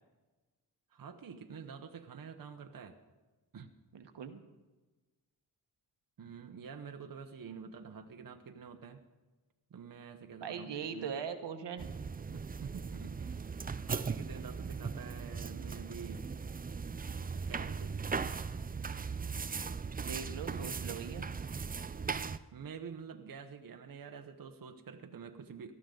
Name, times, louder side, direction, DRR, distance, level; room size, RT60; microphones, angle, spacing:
voice 1, 0.9-3.0 3.5-3.7 6.2-9.0 9.7-11.1 12.3-16.3 17.5-18.0 20.5-20.8 22.5-25.7, right 6 dB, 55° right, 6 dB, 1.1 m, -48 dB
voice 2, 3.9-4.4 10.4-11.9 20.0-21.3, right 7 dB, 80° right, 7 dB, 1.3 m, -40 dB
sound 1, 11.8-22.4, right 5 dB, 20° right, 0.5 m, -38 dB
19.0 x 13.0 x 3.9 m, 1.2 s
cardioid pair, 90°, 42 cm